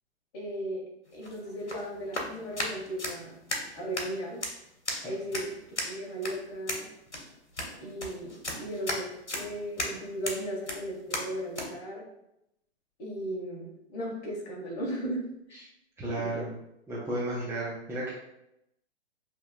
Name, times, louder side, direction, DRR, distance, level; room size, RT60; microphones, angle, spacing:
voice 1, 0.3-0.8 1.1-3.3 3.8-4.4 5.0-5.5 5.8-6.9 7.8-12.0 13.0-15.2 15.5-15.6 16.1-16.5, equal, 35° left, -2 dB, 1.7 m, -36 dB
sound 1, 1.1-11.7, left 1 dB, 90° left, 1.1 m, -37 dB
voice 2, 16.0-16.5 16.9-18.1, right 1 dB, 10° right, -9 dB, 0.7 m, -33 dB
6.9 x 3.0 x 2.3 m, 0.82 s
figure-of-eight pair, 115°, 34 cm